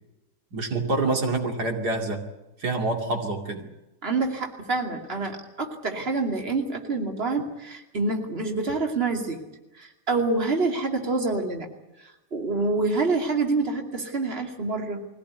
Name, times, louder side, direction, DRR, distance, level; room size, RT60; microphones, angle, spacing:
voice 1, 0.5-2.2 2.6-3.7, right 2 dB, 85° right, 4 dB, 3.1 m, -26 dB
voice 2, 4.0-9.4 9.7-11.7 12.0-15.1, right 3 dB, 40° right, 3 dB, 2.8 m, -27 dB
22.5 x 17.0 x 9.5 m, 0.97 s
omnidirectional pair, 1.7 m